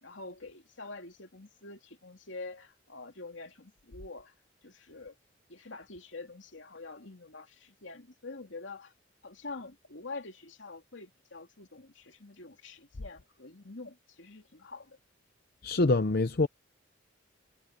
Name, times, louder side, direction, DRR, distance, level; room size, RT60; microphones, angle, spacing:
voice 1, 0.0-4.3 4.6-5.1 5.5-8.9 9.2-15.0, left 3 dB, 75° left, 2.8 m, -46 dB
voice 2, 15.6-16.5, left 2 dB, 50° left, 0.7 m, -25 dB
head